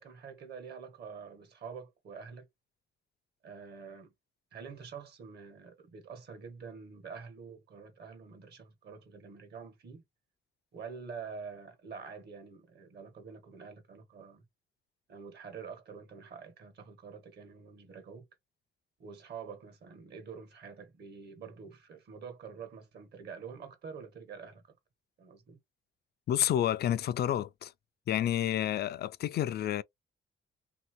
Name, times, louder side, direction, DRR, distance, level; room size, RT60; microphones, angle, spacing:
voice 1, 0.0-2.5 3.4-4.1 4.5-10.0 10.7-14.4 15.1-18.2 19.0-24.6 25.2-25.6, right 6 dB, 55° right, 1.3 m, -47 dB
voice 2, 26.3-27.7 28.1-29.8, left 11 dB, 55° left, 0.4 m, -29 dB
2.9 x 2.7 x 3.0 m
cardioid pair, 90°, 20 cm